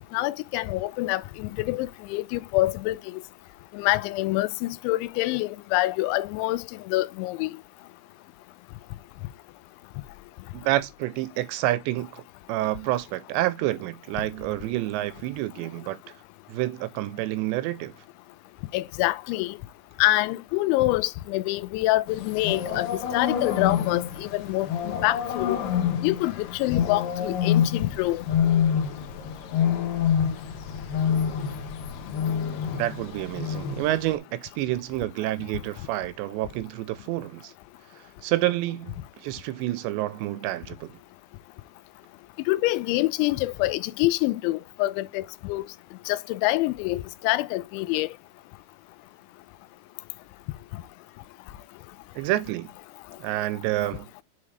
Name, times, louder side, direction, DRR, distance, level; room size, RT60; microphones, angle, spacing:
voice 1, 0.1-3.2 3.7-7.5 18.7-19.6 20.0-25.6 26.0-28.2 42.5-45.7 46.1-48.1 50.7-50.8, left 18 dB, 85° left, 2.9 m, -26 dB
voice 2, 10.5-12.2 12.5-16.0 16.5-17.9 32.7-37.5 38.2-40.9 52.2-52.7 53.2-54.1, right 16 dB, 80° right, 2.8 m, -28 dB
sound 1, 22.1-34.2, left 8 dB, 70° left, 2.2 m, -27 dB
8.6 x 4.7 x 3.2 m
omnidirectional pair, 5.2 m